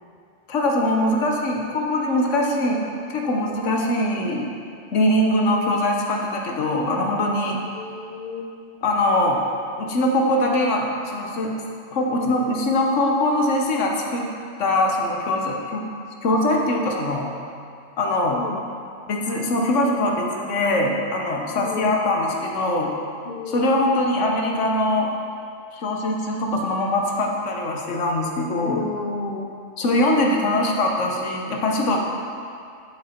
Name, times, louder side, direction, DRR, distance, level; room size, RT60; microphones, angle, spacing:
voice 1, 0.5-2.8 3.1-4.4 4.9-7.6 8.8-9.4 9.8-11.5 11.9-14.3 14.6-15.9 16.2-17.3 18.0-18.4 19.1-22.9 23.5-25.1 25.7-28.9 29.8-32.1, left 1 dB, 65° left, 0 dB, 1.2 m, -22 dB
voice 2, 7.7-8.5 18.3-18.6 21.6-22.0 23.2-23.9 28.6-29.5, left 3 dB, 50° left, 3 dB, 0.5 m, -32 dB
7.9 x 6.6 x 4.3 m, 2.4 s
omnidirectional pair, 1.4 m